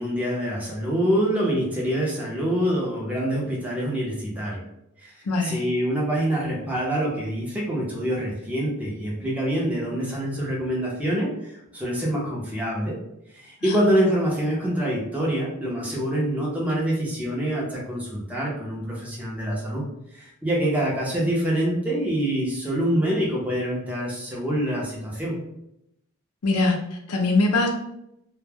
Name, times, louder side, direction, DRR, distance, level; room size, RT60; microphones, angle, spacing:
voice 1, 0.0-4.6 5.0-5.1 5.4-12.9 13.3-19.8 20.1-25.3, right 1 dB, 5° right, -4 dB, 0.6 m, -25 dB
voice 2, 5.3-5.6 13.6-13.8 26.4-27.7, left 3 dB, 85° left, 2 dB, 0.5 m, -22 dB
2.2 x 2.1 x 3.3 m, 0.80 s
head